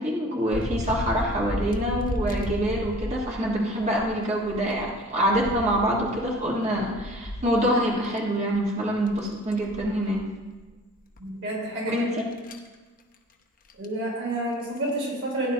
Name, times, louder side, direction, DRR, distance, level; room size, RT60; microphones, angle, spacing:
voice 1, 0.0-10.2 11.9-12.1, equal, 30° right, -3 dB, 1.5 m, -25 dB
sound 1, 0.5-4.1 4.5-8.1 8.5-8.6 9.0-10.3 10.6-10.7 11.2-11.3 12.1-12.7 13.7-13.9 14.6-14.9, left 1 dB, 40° left, 0.8 m, -34 dB
voice 2, 11.2-12.0 13.8-15.5, right 1 dB, 60° right, -5 dB, 3.5 m, -29 dB
16.0 x 9.7 x 2.8 m, 1.3 s
head